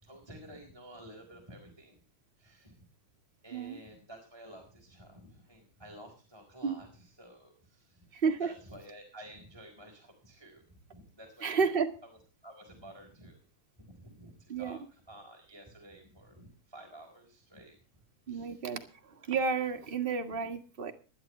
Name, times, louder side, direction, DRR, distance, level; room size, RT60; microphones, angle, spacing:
voice 1, 0.0-2.0 2.4-2.8 3.4-8.1 8.4-11.7 12.0-13.4 13.8-17.8 18.3-18.7, right 1 dB, 10° right, 1 dB, 3.9 m, -52 dB
voice 2, 8.1-8.5 11.4-11.9 14.5-14.8 18.3-20.9, right 5 dB, 30° right, 4 dB, 0.9 m, -31 dB
20.5 x 12.0 x 3.2 m, 0.36 s
omnidirectional pair, 3.6 m